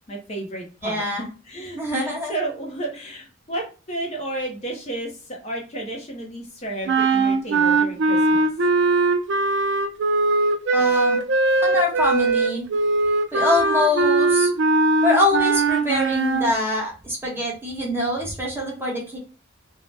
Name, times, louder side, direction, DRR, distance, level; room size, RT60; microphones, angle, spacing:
voice 1, 0.1-8.5, right 1 dB, 30° left, 0 dB, 0.6 m, -32 dB
voice 2, 0.8-1.2 1.8-2.3 10.7-11.2 11.6-12.6 13.3-14.5 15.0-19.2, left 1 dB, 10° right, -2 dB, 0.8 m, -24 dB
sound 1, 6.9-16.5, right 3 dB, 55° right, 0.4 m, -20 dB
2.7 x 2.1 x 3.2 m, 0.35 s
head